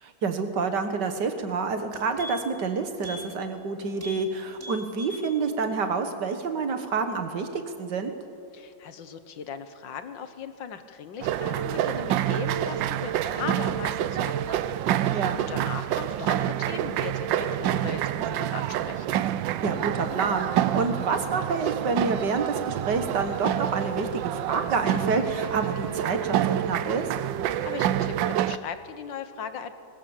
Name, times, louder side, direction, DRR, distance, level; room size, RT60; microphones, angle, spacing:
voice 1, 0.0-8.1 15.1-15.5 19.6-27.1, right 4 dB, 70° right, 7 dB, 2.1 m, -28 dB
sound 1, 1.3-1.4 1.7-2.6 3.0-3.2 3.5-3.7 4.0-4.2 4.5-5.3 5.6-5.7, left 1 dB, 40° right, 3.9 m, -41 dB
voice 2, 8.5-14.6 14.9-19.2 27.6-29.7, left 7 dB, 85° left, 10 dB, 1.9 m, -38 dB
sound 2, 11.2-28.6, right 11 dB, 85° right, 1.4 m, -27 dB
21.5 x 20.0 x 7.2 m, 2.6 s
omnidirectional pair, 2.0 m